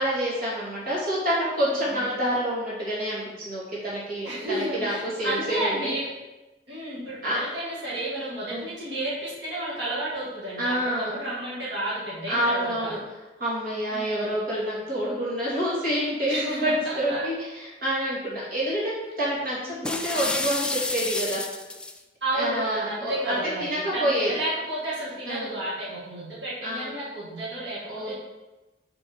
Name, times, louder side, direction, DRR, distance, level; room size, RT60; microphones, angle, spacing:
voice 1, 0.0-5.9 7.2-7.4 8.5-8.7 10.6-11.2 12.3-13.0 13.4-21.4 22.3-24.3 25.3-25.5 26.6-26.9 27.9-28.1, equal, 55° right, -7 dB, 2.3 m, -28 dB
voice 2, 4.2-6.1 6.7-13.0 13.9-14.4 16.3-17.3 19.6-19.9 22.2-28.1, right 1 dB, 80° right, -7 dB, 2.2 m, -31 dB
sound 1, 19.8-22.0, left 2 dB, 5° left, 0.4 m, -29 dB
6.2 x 4.7 x 4.6 m, 1.1 s
head